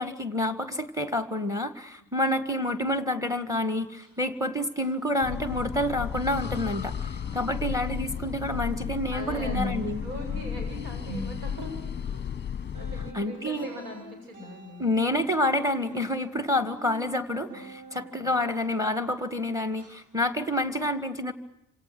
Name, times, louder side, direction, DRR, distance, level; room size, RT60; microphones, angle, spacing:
voice 1, 0.0-10.0 13.1-13.7 14.8-21.3, left 1 dB, 5° right, 10 dB, 1.8 m, -28 dB
sound 1, 3.9-6.0 6.3-19.4 19.8-20.0 20.5-20.6, right 2 dB, 40° right, 8.0 m, -44 dB
sound 2, 5.2-13.1, left 8 dB, 25° left, 1.0 m, -34 dB
voice 2, 9.1-12.3 12.7-14.9 17.9-18.3, equal, 75° right, 3 dB, 7.8 m, -41 dB
27.5 x 27.0 x 6.2 m, 0.80 s
figure-of-eight pair, 50°, 46 cm